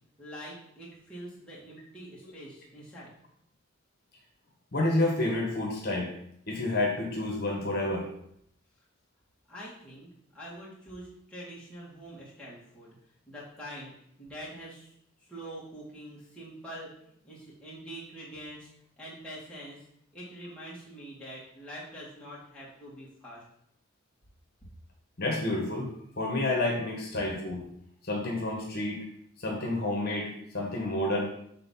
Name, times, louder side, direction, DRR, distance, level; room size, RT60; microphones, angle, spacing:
voice 1, 0.2-3.1 9.5-10.1 10.3-13.0 13.3-13.9 14.2-14.9 15.3-16.9 17.2-18.7 19.0-19.8 20.1-23.4, right 1 dB, 5° left, -8 dB, 2.3 m, -44 dB
voice 2, 4.7-6.1 6.5-8.1 25.2-25.9 26.2-27.6 28.0-29.0 29.4-31.3, left 2 dB, 50° left, 0 dB, 1.3 m, -29 dB
6.8 x 4.0 x 5.6 m, 0.71 s
head